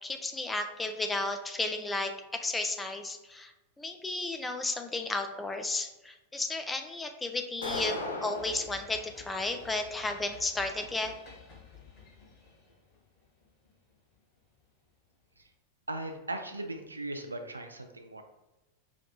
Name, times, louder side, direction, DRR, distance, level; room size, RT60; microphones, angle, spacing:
voice 1, 0.0-11.1, left 2 dB, 10° left, 6 dB, 0.4 m, -33 dB
sound 1, 7.6-8.6, left 2 dB, 70° left, 0.8 m, -35 dB
sound 2, 8.3-14.7, left 4 dB, 40° left, 1.4 m, -52 dB
voice 2, 15.9-18.2, right 2 dB, 80° right, 6 dB, 0.3 m, -38 dB
5.0 x 2.6 x 2.3 m, 1.0 s
figure-of-eight pair, 90°, 0 cm